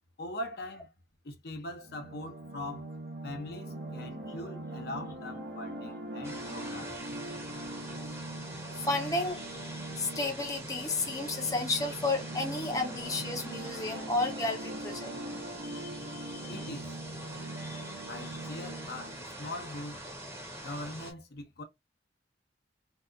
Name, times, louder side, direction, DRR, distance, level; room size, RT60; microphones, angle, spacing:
voice 1, 0.2-0.9 1.2-2.9 3.2-7.0 16.5-16.9 18.1-20.0 20.6-21.6, left 1 dB, 60° left, 0.7 m, -41 dB
sound 1, 1.8-19.2, right 1 dB, 70° right, 0.8 m, -42 dB
sound 2, 6.2-21.1, right 1 dB, 15° right, 0.7 m, -44 dB
voice 2, 8.7-15.1 15.6-16.5 17.6-18.1, left 2 dB, 20° left, 0.6 m, -33 dB
2.7 x 2.3 x 2.3 m
head